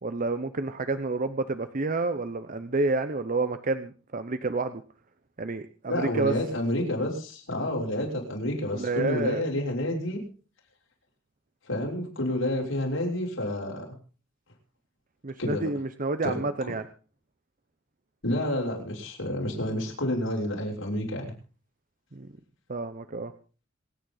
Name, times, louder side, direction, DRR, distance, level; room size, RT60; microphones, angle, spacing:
voice 1, 0.0-4.8 5.4-6.3 8.7-9.4 15.2-16.9 22.1-22.3 22.7-23.3, right 3 dB, 45° right, 10 dB, 0.8 m, -29 dB
voice 2, 5.9-10.2 11.7-13.9 15.4-15.7 16.2-16.4 18.2-21.3, left 1 dB, 85° left, -1 dB, 6.4 m, -29 dB
26.5 x 9.4 x 4.0 m, 0.37 s
head